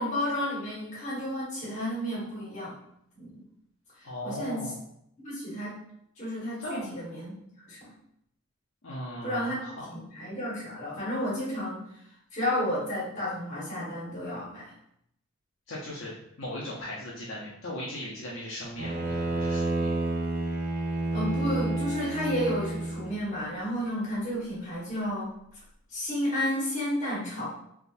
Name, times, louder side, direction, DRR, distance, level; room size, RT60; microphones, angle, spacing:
voice 1, 0.0-2.7 3.2-3.4 4.0-4.7 5.2-5.8 6.2-7.3 7.6-7.9 9.2-9.6 9.9-11.8 12.3-14.7 21.1-25.3 25.9-27.5, equal, 35° left, -8 dB, 1.5 m, -32 dB
voice 2, 4.0-4.8 6.6-6.9 8.8-9.9 15.7-19.9, left 1 dB, 65° left, -6 dB, 0.7 m, -38 dB
Bowed string instrument, 18.8-23.2, right 2 dB, 45° right, 0.5 m, -30 dB
3.6 x 2.7 x 2.5 m, 0.74 s
head